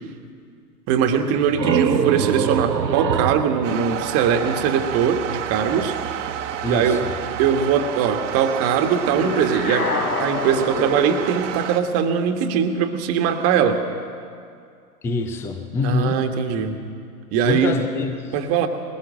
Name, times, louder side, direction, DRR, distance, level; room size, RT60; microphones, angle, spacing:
voice 1, 0.9-5.9 6.7-7.0 7.4-9.9 10.2-13.8 15.8-16.8 17.3-17.8 18.3-18.7, right 7 dB, 30° right, 6 dB, 1.5 m, -21 dB
sound 1, 1.2-4.9, right 7 dB, 85° right, 0.8 m, -24 dB
sound 2, 3.6-11.8, right 9 dB, 45° right, 1.2 m, -30 dB
voice 2, 6.6-7.1 15.0-16.2 17.4-18.3, left 4 dB, 5° left, 7 dB, 0.5 m, -25 dB
sound 3, 9.0-11.3, left 3 dB, 65° left, 3.9 m, -26 dB
20.5 x 20.0 x 6.4 m, 2.3 s
figure-of-eight pair, 105°, 50 cm